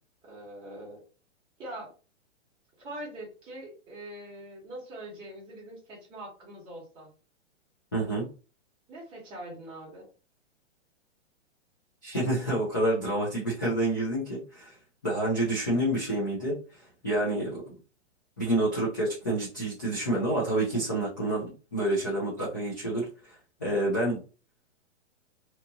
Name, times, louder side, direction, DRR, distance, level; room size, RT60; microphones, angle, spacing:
voice 1, 0.2-1.0 1.6-1.9 2.8-7.1 8.9-10.1, right 1 dB, 15° right, -4 dB, 1.1 m, -43 dB
voice 2, 7.9-8.3 12.0-14.7 15.0-17.7 18.4-21.5 21.7-24.2, right 1 dB, 20° left, -7 dB, 0.3 m, -28 dB
2.8 x 2.6 x 2.3 m, 0.35 s
hypercardioid pair, 160°, 36 cm